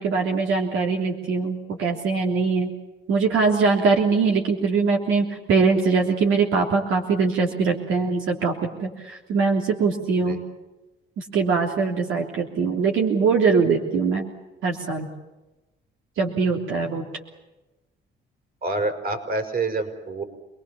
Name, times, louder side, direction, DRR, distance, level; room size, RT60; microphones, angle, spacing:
voice 1, 0.0-2.7 3.1-8.5 8.8-10.4 11.2-14.3 14.6-15.1 16.2-17.1, right 4 dB, 85° right, 1 dB, 3.4 m, -22 dB
voice 2, 18.6-20.2, right 3 dB, 50° right, 7 dB, 5.2 m, -27 dB
28.0 x 20.5 x 7.1 m, 1.0 s
cardioid pair, 90°, 20 cm